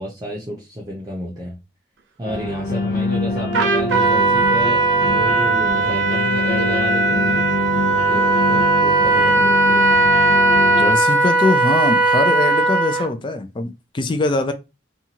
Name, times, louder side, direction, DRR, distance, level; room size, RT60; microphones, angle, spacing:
voice 1, 0.0-1.6 2.2-7.5 7.9-10.1, equal, 20° right, 0.6 m, -31 dB
sound 1, 2.2-10.9, left 2 dB, 50° left, 0.7 m, -25 dB
Trumpet, 3.5-13.1, right 2 dB, 75° right, 0.6 m, -17 dB
voice 2, 10.7-14.5, left 2 dB, 25° left, 0.4 m, -22 dB
2.7 x 2.3 x 2.8 m
head